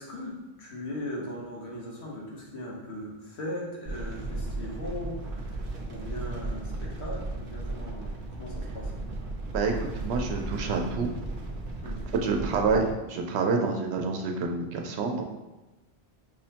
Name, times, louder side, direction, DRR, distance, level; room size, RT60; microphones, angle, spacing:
voice 1, 0.0-8.9 11.8-12.1, left 1 dB, 80° left, -3 dB, 1.2 m, -39 dB
sound 1, 3.8-12.9, right 2 dB, 60° right, 0.7 m, -35 dB
voice 2, 9.5-11.1 12.2-15.2, right 4 dB, 85° right, 3 dB, 0.8 m, -28 dB
5.3 x 2.1 x 2.8 m, 1.1 s
omnidirectional pair, 1.1 m